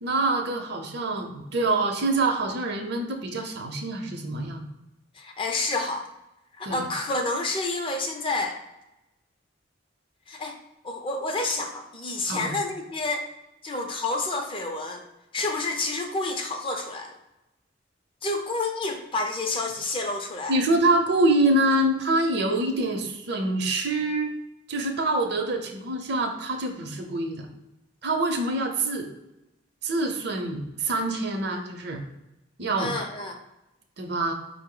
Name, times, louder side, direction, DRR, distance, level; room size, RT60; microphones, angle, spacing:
voice 1, 0.0-4.6 6.6-6.9 12.3-12.5 20.5-24.3 24.7-27.5 28.0-29.1 29.8-32.0 32.6-32.9 34.0-34.3, right 2 dB, 60° right, 4 dB, 0.6 m, -25 dB
voice 2, 5.2-6.1 6.6-8.6 10.3-10.5 10.8-13.2 13.6-15.0 15.3-17.1 18.2-20.6 32.8-33.4, left 2 dB, 25° left, 4 dB, 0.4 m, -29 dB
4.8 x 2.0 x 3.8 m, 0.94 s
head